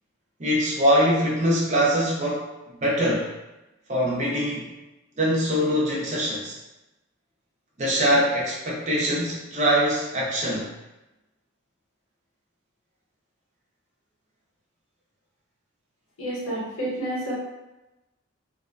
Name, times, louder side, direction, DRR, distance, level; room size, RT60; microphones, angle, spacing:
voice 1, 0.4-3.3 3.9-4.7 5.2-6.6 7.8-10.7, equal, 35° right, -5 dB, 0.6 m, -23 dB
voice 2, 16.2-17.3, right 1 dB, 80° left, -8 dB, 1.1 m, -29 dB
2.3 x 2.1 x 2.4 m, 1.0 s
head